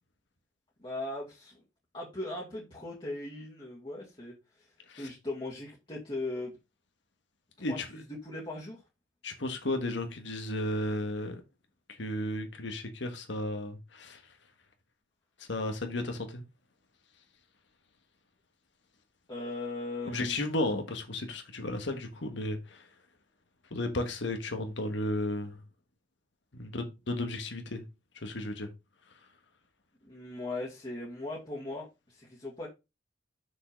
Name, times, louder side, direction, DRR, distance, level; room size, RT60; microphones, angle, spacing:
voice 1, 0.8-1.6 1.9-4.7 5.0-6.6 7.7-8.8 19.3-20.3 30.0-32.7, left 2 dB, 30° left, 2.1 m, -39 dB
voice 2, 9.2-11.4 11.9-14.2 15.4-16.4 20.1-22.9 23.7-25.6 26.5-27.9 28.1-28.7, left 1 dB, 70° left, 1.5 m, -34 dB
6.4 x 5.6 x 5.2 m
head